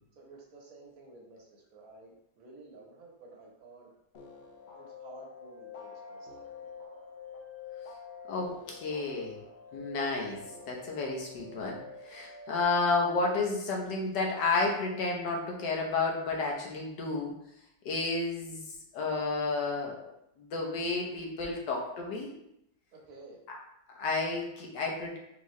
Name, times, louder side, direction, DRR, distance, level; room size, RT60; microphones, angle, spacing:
voice 1, 0.2-3.9 4.7-6.7 12.2-12.4 22.9-23.4, right 3 dB, 60° right, -2 dB, 1.3 m, -53 dB
sound 1, 4.1-12.6, left 5 dB, 70° left, 0.6 m, -47 dB
voice 2, 8.3-9.4 9.7-10.4 10.7-17.3 17.8-18.6 18.9-19.9 20.4-22.3 23.5-23.6 23.9-25.2, left 3 dB, 90° left, 0 dB, 1.5 m, -31 dB
4.5 x 2.9 x 3.0 m, 0.78 s
omnidirectional pair, 1.8 m